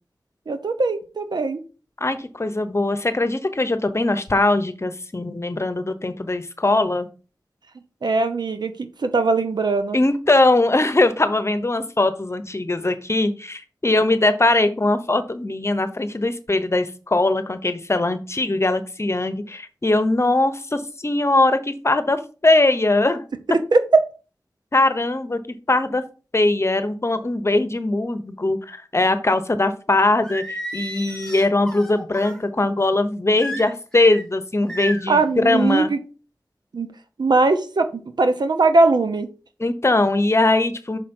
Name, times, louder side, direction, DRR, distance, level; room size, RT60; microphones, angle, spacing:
voice 1, 0.5-1.6 8.0-10.0 23.5-23.8 35.1-36.0 36.7-36.9 37.2-39.3, right 3 dB, 75° right, 9 dB, 0.9 m, -20 dB
voice 2, 2.0-7.1 9.9-23.2 24.7-25.4 25.7-26.0 26.3-35.9 39.6-41.0, left 2 dB, 40° left, 10 dB, 1.0 m, -21 dB
Singing, 30.2-32.4 33.4-34.2 34.7-35.2, right 1 dB, 5° left, 3.1 m, -33 dB
6.3 x 5.0 x 4.4 m, 0.35 s
cardioid pair, 45°, 7 cm